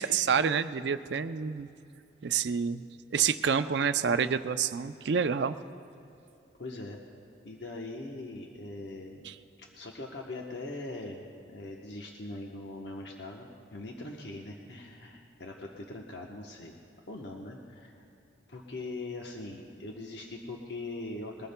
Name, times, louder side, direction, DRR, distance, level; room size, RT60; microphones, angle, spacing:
voice 1, 0.0-1.7 2.2-2.8 3.1-5.6 9.2-9.3, right 6 dB, 65° right, 11 dB, 0.4 m, -28 dB
voice 2, 6.6-7.0 7.4-9.2 9.6-16.8 17.1-18.0 18.5-21.5, left 2 dB, 65° left, 0 dB, 1.0 m, -41 dB
21.5 x 19.0 x 2.2 m, 2.8 s
head